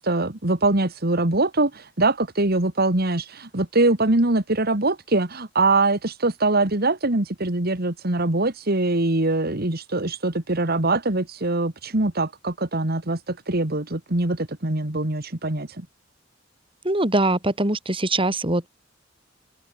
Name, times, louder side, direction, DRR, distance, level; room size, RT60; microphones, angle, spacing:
voice 1, 0.0-15.9, right 2 dB, 50° right, 2.3 m, -23 dB
voice 2, 16.8-18.7, right 2 dB, 25° right, 6.9 m, -22 dB
head